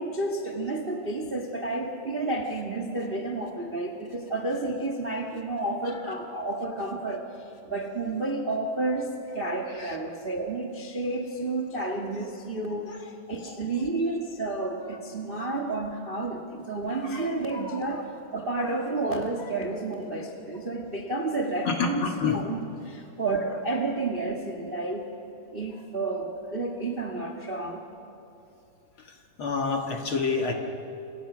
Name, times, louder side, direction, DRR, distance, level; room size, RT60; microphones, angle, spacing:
voice 1, 0.0-25.1 25.5-27.9, right 2 dB, 45° right, 4 dB, 0.7 m, -31 dB
voice 2, 5.8-6.2 9.6-10.0 11.5-11.6 12.9-13.0 13.4-13.9 14.8-15.0 15.7-15.8 16.9-18.0 19.4-19.5 21.6-22.4 23.5-23.6 25.7-25.8 29.0-30.5, left 5 dB, 45° left, 3 dB, 1.9 m, -31 dB
28.0 x 28.0 x 6.1 m, 2.9 s
omnidirectional pair, 4.1 m